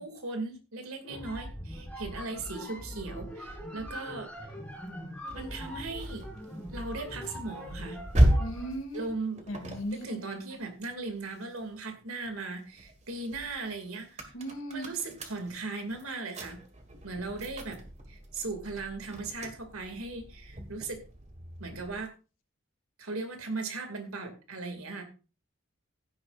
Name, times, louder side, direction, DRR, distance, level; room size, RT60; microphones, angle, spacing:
voice 1, 0.0-4.3 5.3-6.3 6.7-8.0 8.9-9.5 9.9-14.3 14.7-16.6 17.0-17.8 18.1-21.0 21.6-22.1 23.0-25.0, right 3 dB, 85° right, 5 dB, 2.6 m, -38 dB
sound 1, 1.0-8.8, equal, 5° left, 2.9 m, -41 dB
sound 2, 5.3-11.8 12.2-22.0, right 1 dB, 35° right, 1.8 m, -34 dB
voice 2, 8.4-9.1 9.5-10.2 14.3-14.9, equal, 65° left, 5 dB, 2.6 m, -37 dB
15.5 x 9.9 x 2.6 m, 0.33 s
head